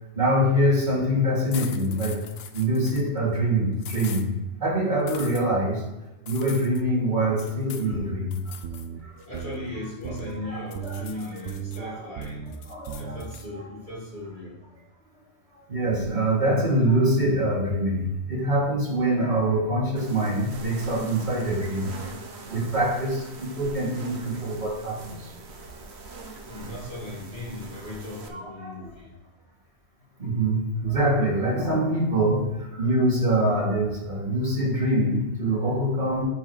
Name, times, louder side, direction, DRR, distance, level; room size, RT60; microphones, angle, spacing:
voice 1, 0.1-2.2 2.5-4.3 4.6-5.8 6.3-8.3 10.4-11.0 11.3-11.4 11.8-12.1 12.7-13.2 13.5-13.6 15.7-22.0 22.5-25.3 26.5-26.6 28.3-28.9 30.2-36.2, right 1 dB, 40° right, -5 dB, 2.8 m, -24 dB
sound 1, 1.5-3.1 3.8-4.3 5.1-5.4 6.3-6.8 7.4-7.9 8.3-8.9 9.2-10.3 10.7-11.8 12.2-13.5, left 8 dB, 65° left, 0.9 m, -42 dB
sound 2, 7.9-8.3 8.6-9.0 9.3-9.7 10.0-10.4 10.7-11.1 11.5-11.8 12.2-12.5 12.9-13.2, right 8 dB, 85° right, 0.9 m, -35 dB
voice 2, 9.3-12.5 12.9-14.6 26.5-29.1, left 2 dB, 45° left, -4 dB, 2.1 m, -37 dB
sound 3, 20.0-28.3, right 3 dB, 70° right, 1.2 m, -42 dB
10.5 x 4.9 x 3.3 m, 1.0 s
omnidirectional pair, 1.1 m